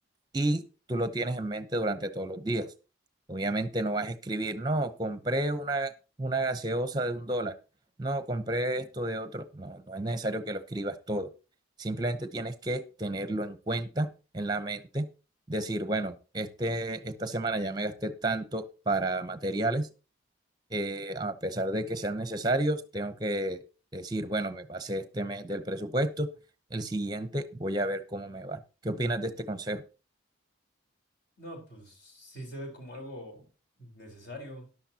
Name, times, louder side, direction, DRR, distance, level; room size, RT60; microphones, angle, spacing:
voice 1, 0.9-2.6 3.3-5.9 6.2-7.5 8.0-11.3 11.8-14.1 14.3-15.1 15.5-19.9 20.7-23.6 23.9-26.3 26.7-29.8, right 1 dB, 20° right, 10 dB, 0.8 m, -31 dB
voice 2, 31.4-33.5 33.8-34.7, equal, 50° left, 3 dB, 4.0 m, -43 dB
13.5 x 11.0 x 2.8 m, 0.33 s
head